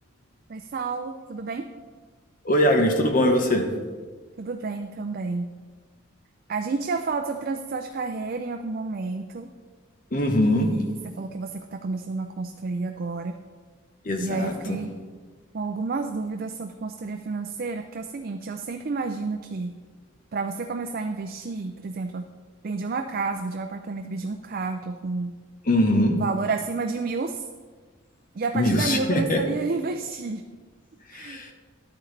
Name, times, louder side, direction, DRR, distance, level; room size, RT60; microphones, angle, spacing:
voice 1, 0.5-1.7 4.4-5.5 6.5-9.5 10.4-13.4 14.2-14.9 15.5-19.8 20.3-22.3 22.6-25.4 26.1-27.5 28.3-30.5 31.1-31.4, right 4 dB, 50° right, 6 dB, 0.4 m, -30 dB
voice 2, 2.4-3.7 10.1-10.7 14.0-14.8 25.7-26.2 28.5-29.4 31.1-31.5, left 1 dB, 45° left, 4 dB, 1.0 m, -22 dB
11.5 x 8.7 x 3.3 m, 1.5 s
head